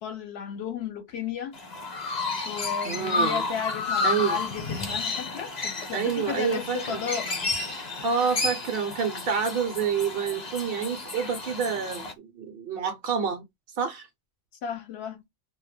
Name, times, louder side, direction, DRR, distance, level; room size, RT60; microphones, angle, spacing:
voice 1, 0.0-1.6 2.4-7.3 14.6-15.2, left 7 dB, 70° left, 0.8 m, -34 dB
Chirp tweet, 1.5-12.1, left 3 dB, 40° left, 0.8 m, -31 dB
voice 2, 2.8-3.5 4.0-4.4 5.9-7.0 8.0-13.4 13.8-14.1, right 6 dB, 65° right, 0.7 m, -28 dB
2.2 x 2.1 x 3.2 m
omnidirectional pair, 1.2 m